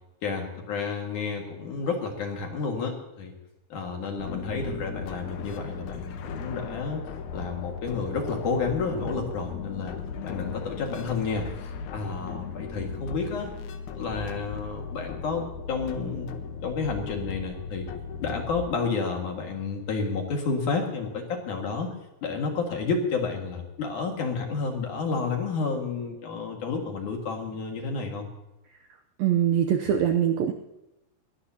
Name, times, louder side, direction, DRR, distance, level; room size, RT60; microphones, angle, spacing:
voice 1, 0.2-3.3 3.7-7.0 7.3-10.0 10.2-13.5 13.9-16.3 16.6-17.9 18.2-21.9 22.2-28.3, left 4 dB, 55° left, 1 dB, 2.9 m, -30 dB
sound 1, 4.2-18.6, left 5 dB, 90° left, 1.7 m, -37 dB
voice 2, 29.2-30.5, right 9 dB, 80° right, 6 dB, 2.1 m, -23 dB
21.5 x 17.5 x 2.9 m, 0.98 s
omnidirectional pair, 5.1 m